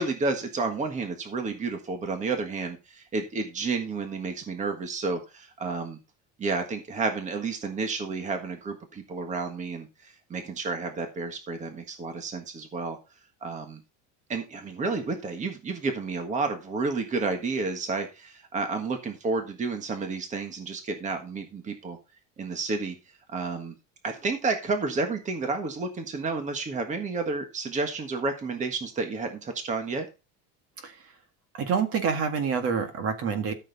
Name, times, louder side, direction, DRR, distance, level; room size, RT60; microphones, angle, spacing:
voice 1, 0.0-6.0 6.4-13.0 13.4-13.8 14.3-22.0 22.4-22.9 23.3-23.8 24.0-30.1, right 3 dB, 20° right, 6 dB, 1.5 m, -31 dB
voice 2, 31.5-33.5, right 6 dB, 40° right, 8 dB, 1.8 m, -27 dB
13.0 x 6.7 x 4.0 m, 0.29 s
cardioid pair, 165°, 35 cm